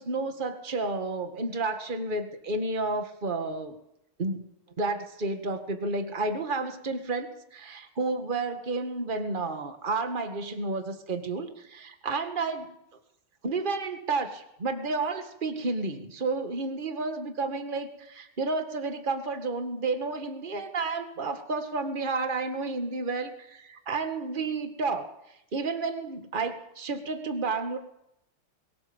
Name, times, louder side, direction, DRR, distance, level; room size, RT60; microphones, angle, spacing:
voice 1, 0.0-3.8 4.2-4.5 4.8-12.8 13.4-25.1 25.5-27.8, right 3 dB, 25° right, 7 dB, 1.8 m, -31 dB
22.0 x 18.0 x 7.2 m, 0.82 s
omnidirectional pair, 2.4 m